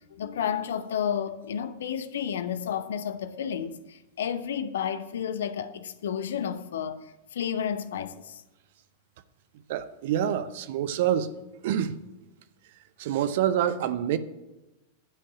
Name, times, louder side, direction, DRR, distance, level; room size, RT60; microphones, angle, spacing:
voice 1, 0.1-7.0 7.3-8.4, left 8 dB, 60° left, 0.7 m, -31 dB
voice 2, 9.7-11.3 11.6-12.0 13.0-14.2, right 10 dB, 55° right, 0.6 m, -26 dB
11.0 x 5.4 x 8.2 m
figure-of-eight pair, 90°, 0 cm